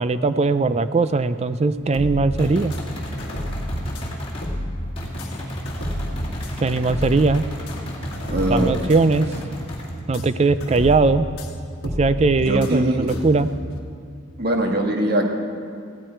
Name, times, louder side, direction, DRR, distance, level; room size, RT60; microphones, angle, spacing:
voice 1, 0.0-2.7 6.6-7.5 8.5-9.3 10.1-11.3 11.8-13.5, right 3 dB, 30° right, 13 dB, 0.3 m, -19 dB
sound 1, 1.8-13.8, equal, 50° left, 1.5 m, -31 dB
sound 2, 2.4-4.5 4.9-9.9, left 1 dB, 25° left, 2.3 m, -34 dB
voice 2, 8.3-8.7 12.4-13.2 14.4-15.3, right 1 dB, 50° right, 2 dB, 1.4 m, -22 dB
16.0 x 13.0 x 4.5 m, 2.4 s
head